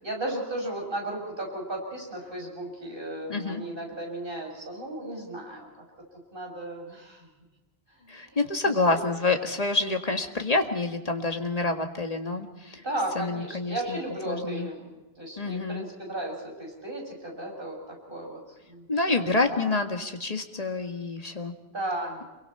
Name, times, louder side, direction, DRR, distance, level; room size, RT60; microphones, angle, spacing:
voice 1, 0.0-5.7 6.3-7.3 8.3-9.0 12.8-18.4 18.7-19.7 21.7-22.3, right 1 dB, 55° right, 0 dB, 6.6 m, -35 dB
voice 2, 3.3-3.6 8.1-12.8 13.2-14.0 14.3-14.7 15.4-15.9 18.9-21.5, left 3 dB, 35° left, 5 dB, 1.9 m, -27 dB
27.0 x 23.5 x 4.4 m, 1.1 s
omnidirectional pair, 1.1 m